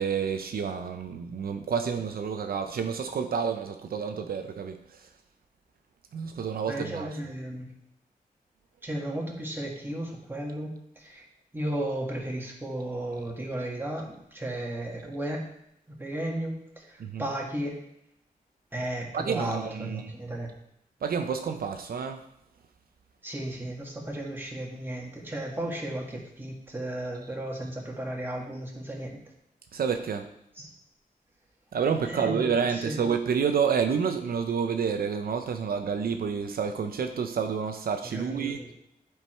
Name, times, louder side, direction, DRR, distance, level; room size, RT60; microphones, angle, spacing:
voice 1, 0.0-4.8 6.1-7.1 17.0-17.3 19.1-20.1 21.0-22.2 29.7-30.3 31.7-38.7, right 6 dB, 80° right, 6 dB, 0.6 m, -29 dB
voice 2, 6.7-7.7 8.8-11.2 11.5-15.4 15.9-17.7 18.7-20.5 23.2-29.2 30.6-30.7 32.0-33.0 38.1-38.7, right 1 dB, 15° right, -2 dB, 1.9 m, -34 dB
9.1 x 4.7 x 4.5 m, 0.76 s
wide cardioid pair, 100°, 15 cm